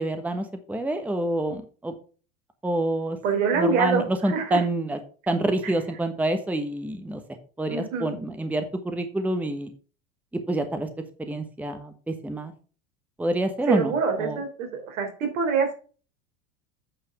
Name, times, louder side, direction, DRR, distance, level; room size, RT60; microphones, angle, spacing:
voice 1, 0.0-1.9 2.6-3.2 3.5-5.0 5.3-7.2 7.6-9.7 10.5-10.9 11.2-12.5 13.2-13.9 14.2-14.4, right 1 dB, 5° right, 7 dB, 1.1 m, -27 dB
voice 2, 3.2-4.6 5.6-5.7 7.7-8.1 13.7-15.7, right 5 dB, 70° right, 3 dB, 3.4 m, -25 dB
8.8 x 4.9 x 5.8 m, 0.39 s
hypercardioid pair, 95°, 41 cm